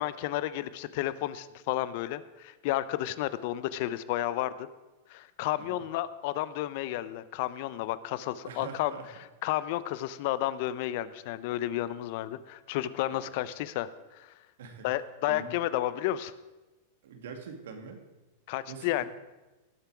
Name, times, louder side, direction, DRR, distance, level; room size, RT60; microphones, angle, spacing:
voice 1, 0.0-4.7 5.1-8.9 9.4-14.3 14.8-16.3 18.5-19.1, left 14 dB, 55° left, 16 dB, 0.7 m, -32 dB
voice 2, 8.4-9.1 13.1-13.3 14.6-14.9 15.3-15.5 17.0-18.0 18.7-19.1, right 6 dB, 80° right, 6 dB, 2.0 m, -44 dB
18.0 x 6.9 x 4.8 m, 1.1 s
hypercardioid pair, 130°, 0 cm